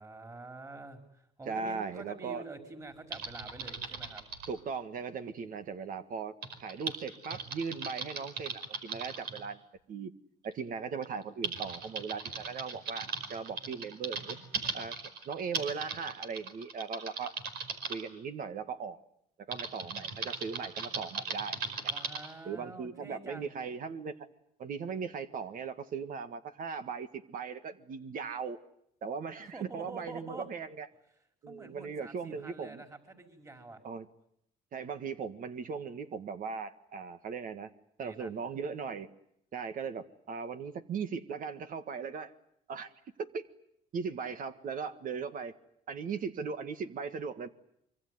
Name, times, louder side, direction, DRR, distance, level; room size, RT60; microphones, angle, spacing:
voice 1, 0.0-4.2 21.9-23.5 29.4-30.5 31.5-33.8 38.0-38.3, right 2 dB, 20° right, 5 dB, 5.2 m, -47 dB
voice 2, 1.5-2.4 4.5-6.3 6.6-9.6 9.9-10.1 10.4-14.4 14.7-15.0 15.2-17.4 17.9-19.0 19.5-21.6 22.4-24.3 24.6-28.6 29.0-30.9 31.4-32.8 33.8-34.1 34.7-37.7 38.0-39.1 39.5-42.3 42.7-42.9 43.2-43.5 43.9-45.5 45.9-47.5, right 5 dB, 55° right, 10 dB, 1.8 m, -38 dB
Typing, 3.1-4.5 6.4-9.4 10.4-10.5 11.0-18.0 19.5-22.3, right 5 dB, 75° right, 5.0 m, -38 dB
25.5 x 24.5 x 9.5 m, 0.72 s
cardioid pair, 110°, 17 cm